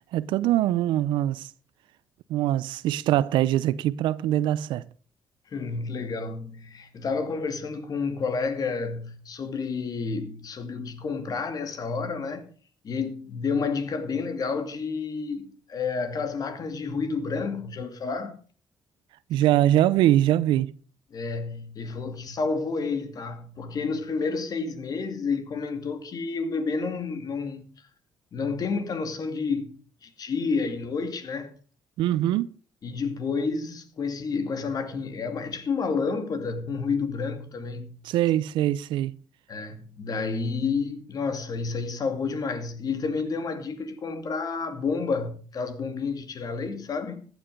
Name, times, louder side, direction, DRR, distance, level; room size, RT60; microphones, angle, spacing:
voice 1, 0.1-1.5 2.3-4.8 19.3-20.7 32.0-32.5 38.0-39.2, right 13 dB, 90° right, 0.6 m, -23 dB
voice 2, 5.5-12.5 12.8-18.4 21.1-27.7 28.3-29.7 30.0-31.5 32.8-38.0 39.5-47.3, left 4 dB, 50° left, 2.4 m, -30 dB
15.0 x 9.3 x 5.2 m
cardioid pair, 90°, 8 cm